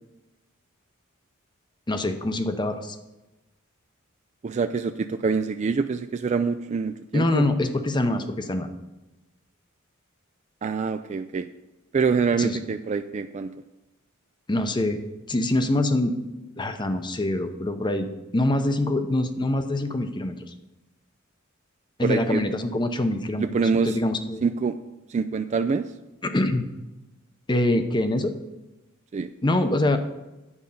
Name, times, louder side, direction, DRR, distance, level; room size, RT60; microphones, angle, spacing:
voice 1, 1.9-3.0 7.1-8.7 12.4-12.6 14.5-15.0 15.3-16.2 16.6-18.1 18.3-20.3 22.0-23.5 23.8-24.4 26.2-26.7 27.5-28.3 29.4-30.0, left 1 dB, 20° left, 8 dB, 0.7 m, -24 dB
voice 2, 4.4-7.5 10.6-11.5 11.9-13.5 22.0-22.4 23.4-24.0 24.4-24.8 25.1-25.9 29.1-29.3, right 5 dB, 35° right, 8 dB, 0.3 m, -25 dB
9.8 x 5.2 x 7.0 m, 1.0 s
head